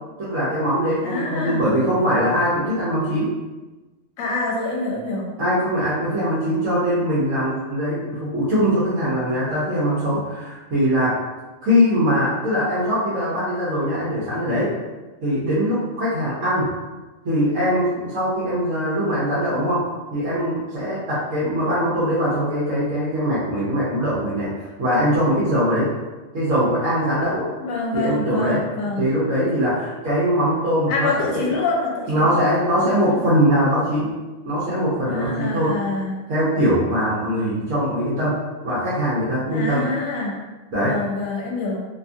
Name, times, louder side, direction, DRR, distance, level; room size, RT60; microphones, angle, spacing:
voice 1, 0.2-3.3 5.4-11.2 11.6-14.7 15.2-16.7 17.2-19.8 20.1-24.5 24.8-25.9 26.3-27.5 27.9-28.6 29.0-31.6 32.1-34.1 34.4-35.7 36.3-38.4 38.6-39.8 40.7-41.0, equal, 70° right, -8 dB, 1.1 m, -21 dB
voice 2, 1.0-1.6 4.2-5.3 27.6-29.0 30.9-32.3 32.8-33.3 35.1-36.1 39.5-40.4 40.9-41.8, left 2 dB, 75° left, -1 dB, 1.0 m, -26 dB
2.8 x 2.4 x 2.5 m, 1.2 s
omnidirectional pair, 1.4 m